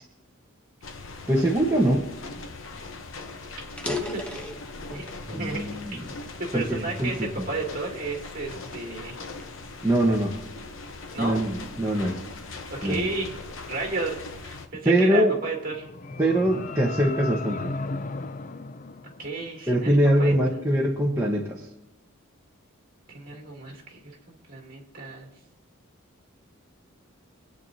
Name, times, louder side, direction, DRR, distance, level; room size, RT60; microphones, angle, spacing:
sound 1, 0.8-14.7, left 3 dB, 65° left, 0.9 m, -40 dB
voice 1, 1.3-2.0 5.3-6.0 6.5-7.3 9.8-10.3 11.2-12.2 12.8-13.1 14.8-15.4 16.2-17.7 19.7-21.6, right 1 dB, 10° right, -4 dB, 1.1 m, -23 dB
sound 2, 3.0-3.1 3.6-5.2 5.8-7.1 7.6-7.9 8.5-10.6, left 2 dB, 5° left, 0.9 m, -37 dB
voice 2, 3.8-4.5 4.9-5.0 5.3-6.0 6.5-9.2 11.1-11.4 12.7-15.9 19.2-20.6 23.1-24.0 24.3-25.3, right 3 dB, 40° right, -1 dB, 2.8 m, -33 dB
sound 3, 15.5-19.8, left 3 dB, 40° left, 0.4 m, -35 dB
24.5 x 8.9 x 2.8 m, 0.91 s
head